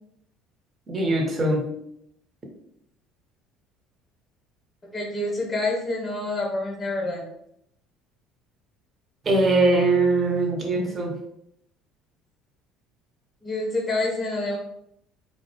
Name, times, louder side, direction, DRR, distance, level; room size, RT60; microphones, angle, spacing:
voice 1, 0.9-1.6 9.2-11.1, right 2 dB, 35° right, 1 dB, 0.7 m, -21 dB
voice 2, 4.9-7.3 13.4-14.6, left 2 dB, 30° left, -1 dB, 0.7 m, -27 dB
2.3 x 2.0 x 2.7 m, 0.74 s
supercardioid pair, 80°, 0 cm